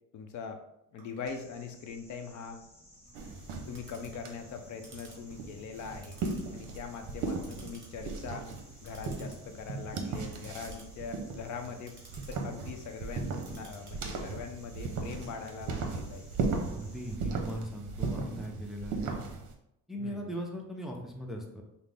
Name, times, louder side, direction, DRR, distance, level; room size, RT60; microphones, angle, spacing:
voice 1, 0.1-0.6 0.9-2.6 3.7-6.2 6.5-8.5 8.8-12.0 12.3-16.3 20.0-20.4, left 6 dB, 60° left, 6 dB, 0.7 m, -42 dB
Clock, 1.0-15.9, right 3 dB, 35° right, 1.6 m, -58 dB
sound 1, 1.3-17.2, equal, 20° left, 1.2 m, -58 dB
sound 2, 3.1-19.5, right 4 dB, 65° right, 0.8 m, -37 dB
voice 2, 16.7-19.2 19.9-21.6, equal, ahead, 0 dB, 0.6 m, -39 dB
5.7 x 2.0 x 3.4 m, 0.82 s
cardioid pair, 115°, 33 cm